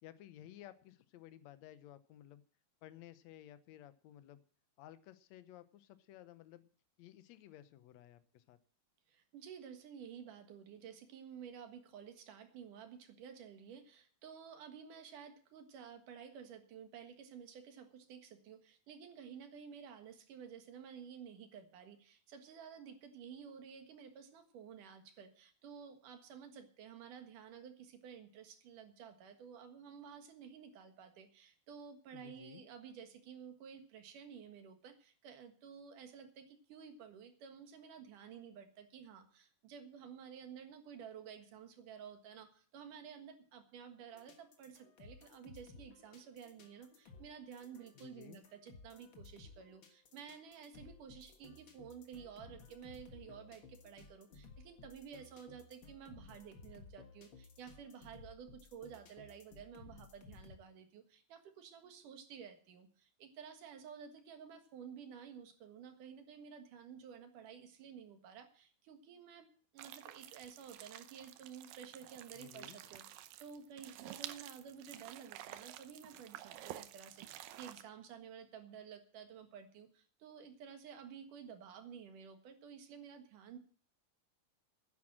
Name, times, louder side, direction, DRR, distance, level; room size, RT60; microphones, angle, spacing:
voice 1, 0.0-2.4 2.8-4.4 4.8-6.7 7.0-8.6 32.1-32.6 48.0-48.4 72.3-73.0, left 12 dB, 70° left, 13 dB, 1.7 m, -56 dB
voice 2, 9.1-83.6, right 7 dB, 70° right, 7 dB, 3.1 m, -52 dB
sound 1, 44.1-60.6, left 4 dB, 45° left, 1.8 m, -58 dB
sound 2, 69.8-77.8, right 13 dB, 85° right, 2.5 m, -51 dB
10.5 x 10.0 x 7.4 m, 0.43 s
omnidirectional pair, 4.0 m